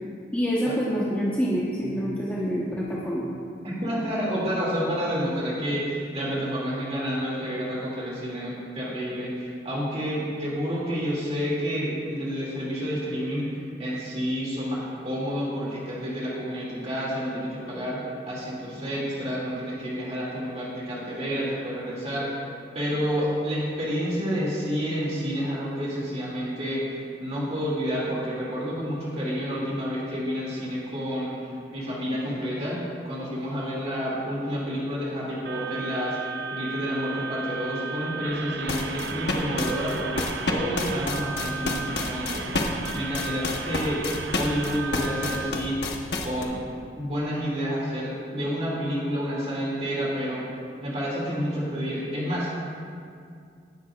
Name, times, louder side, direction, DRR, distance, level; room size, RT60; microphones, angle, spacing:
voice 1, 0.3-3.2, equal, 10° left, -7 dB, 1.2 m, -26 dB
voice 2, 3.6-18.0 18.3-22.3 22.7-42.5 42.9-44.0 44.4-45.8 46.2-46.6 47.0-50.5 50.8-52.5, equal, 35° right, -6 dB, 2.6 m, -29 dB
sound 1, 35.5-45.5, right 5 dB, 75° right, 0.6 m, -35 dB
sound 2, 38.7-46.4, left 3 dB, 70° left, 1.1 m, -29 dB
19.0 x 10.5 x 2.5 m, 2.3 s
head